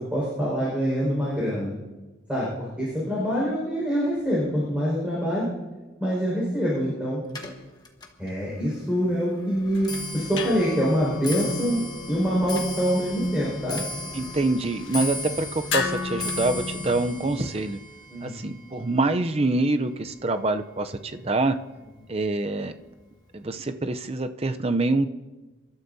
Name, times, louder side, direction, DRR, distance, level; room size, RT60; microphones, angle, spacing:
voice 1, 0.1-1.7 2.3-2.5 2.8-5.5 6.0-7.2 8.2-11.8 12.1-13.8 18.1-18.4, equal, 5° right, -7 dB, 5.1 m, -25 dB
Clock, 7.3-20.6 21.0-21.4 22.2-22.3 22.6-23.0 23.3-23.4, left 2 dB, 20° left, 1.3 m, -37 dB
sound 1, 9.6-17.6, left 4 dB, 80° left, 1.6 m, -35 dB
voice 2, 14.1-17.8 18.2-21.6 22.1-22.7 23.3-25.1, right 2 dB, 30° right, 9 dB, 0.6 m, -25 dB
27.5 x 13.0 x 2.7 m, 1.2 s
head